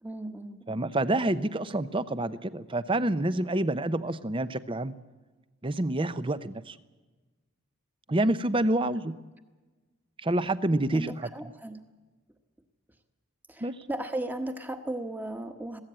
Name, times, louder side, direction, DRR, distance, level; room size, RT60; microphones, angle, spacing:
voice 1, 0.0-0.8 10.9-11.8 13.5-15.8, right 1 dB, 10° right, 7 dB, 1.2 m, -36 dB
voice 2, 0.7-5.0 5.6-6.8 8.1-9.1 10.2-11.3 13.6-13.9, right 1 dB, 25° right, 14 dB, 0.6 m, -28 dB
21.5 x 16.0 x 8.9 m, 1.3 s
head